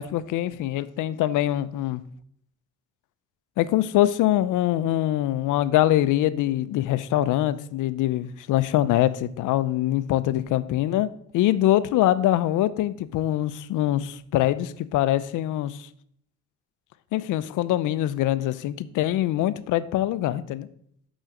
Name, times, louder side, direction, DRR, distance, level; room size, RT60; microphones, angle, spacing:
voice 1, 0.0-2.0 3.6-15.9 17.1-20.7, left 13 dB, 85° left, 0.6 m, -24 dB
6.3 x 6.0 x 6.4 m
cardioid pair, 90°, 30 cm